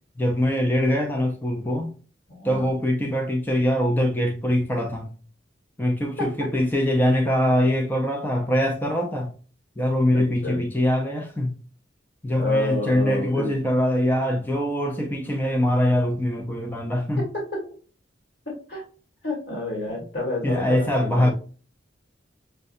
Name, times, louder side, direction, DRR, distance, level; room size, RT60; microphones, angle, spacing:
voice 1, 0.2-1.9 2.4-5.1 5.8-9.3 9.8-11.6 12.2-17.2 20.4-21.3, left 1 dB, 10° left, 0.5 m, -23 dB
voice 2, 2.3-2.7 6.2-6.3 10.1-10.6 12.3-13.5 17.5-17.6 18.7-18.8 19.2-21.3, left 2 dB, 60° left, 1.4 m, -29 dB
6.4 x 2.2 x 2.6 m
head